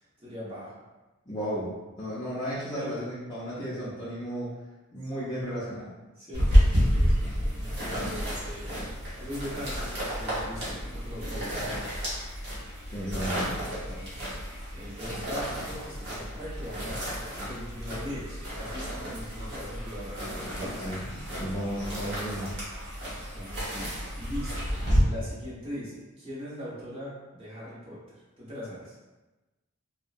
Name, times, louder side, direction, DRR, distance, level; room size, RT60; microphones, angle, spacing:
voice 1, 0.2-0.7 2.7-3.1 5.2-5.4 6.2-8.8 9.2-11.8 12.9-14.4 14.7-21.0 23.3-24.5 25.0-29.0, equal, 25° right, -10 dB, 1.1 m, -41 dB
voice 2, 1.3-1.7 2.0-4.5 4.9-5.9 12.9-13.6 20.3-22.5, equal, 20° left, -10 dB, 0.6 m, -34 dB
sound 1, 6.3-25.0, equal, 55° right, 1.1 m, -30 dB
2.7 x 2.1 x 2.5 m, 1.1 s
head